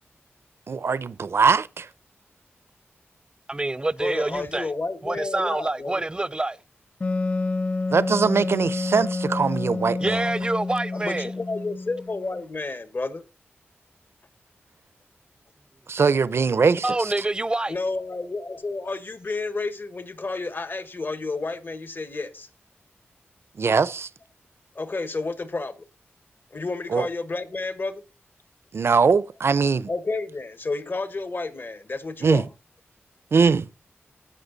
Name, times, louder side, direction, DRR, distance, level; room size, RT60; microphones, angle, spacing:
voice 1, 0.7-1.9 7.9-10.2 15.9-17.1 23.6-24.1 26.9-27.1 28.7-29.9 32.2-32.4 33.3-33.7, right 5 dB, 65° right, 0.6 m, -21 dB
voice 2, 3.5-4.7 5.0-6.6 10.0-11.3 16.8-17.7, right 2 dB, 20° right, 0.5 m, -26 dB
voice 3, 4.0-6.0 10.9-13.2 17.7-22.5 24.7-25.8 26.5-28.0 29.9-32.4, left 3 dB, 50° left, 1.5 m, -31 dB
Wind instrument woodwind instrument, 7.0-12.4, left 3 dB, 30° left, 0.5 m, -29 dB
16.5 x 5.8 x 4.0 m
cardioid pair, 65°, 5 cm